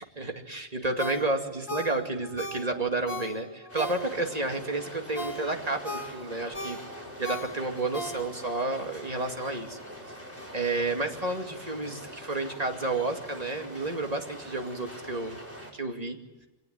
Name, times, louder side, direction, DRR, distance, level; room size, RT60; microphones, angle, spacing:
voice 1, 0.0-6.8 7.2-9.8 10.5-15.4 15.7-16.2, right 2 dB, 30° right, 5 dB, 2.5 m, -31 dB
Ringtone, 1.0-4.4 4.8-8.6 9.0-9.1, left 1 dB, 25° left, 4.4 m, -38 dB
sound 1, 3.7-15.7, equal, 10° right, 4.8 m, -44 dB
25.0 x 18.0 x 9.7 m, 1.1 s
omnidirectional pair, 1.3 m